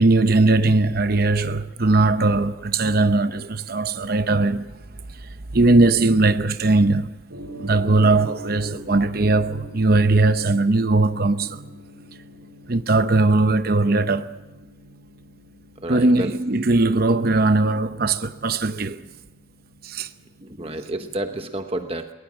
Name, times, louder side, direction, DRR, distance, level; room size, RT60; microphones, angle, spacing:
voice 1, 0.0-4.7 5.1-7.1 7.5-11.7 12.7-14.4 15.9-19.1 19.8-20.1, right 2 dB, 50° right, 0.8 m, -19 dB
Gong, 7.3-21.0, equal, 80° right, 5.7 m, -45 dB
voice 2, 15.8-16.4 20.4-22.1, right 1 dB, 30° right, 1.0 m, -30 dB
21.5 x 20.0 x 7.4 m
head